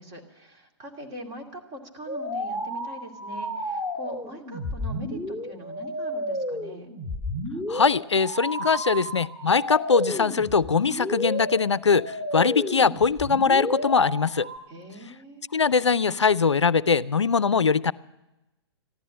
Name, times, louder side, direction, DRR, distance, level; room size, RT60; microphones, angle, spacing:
voice 1, 0.0-6.9 14.7-15.4, right 1 dB, 30° right, 2 dB, 2.5 m, -42 dB
sound 1, 2.1-14.6, equal, 10° right, 2.1 m, -32 dB
voice 2, 7.7-14.5 15.5-17.9, left 5 dB, 85° left, 20 dB, 0.5 m, -22 dB
14.5 x 11.5 x 7.5 m, 0.96 s
figure-of-eight pair, 120°, 14 cm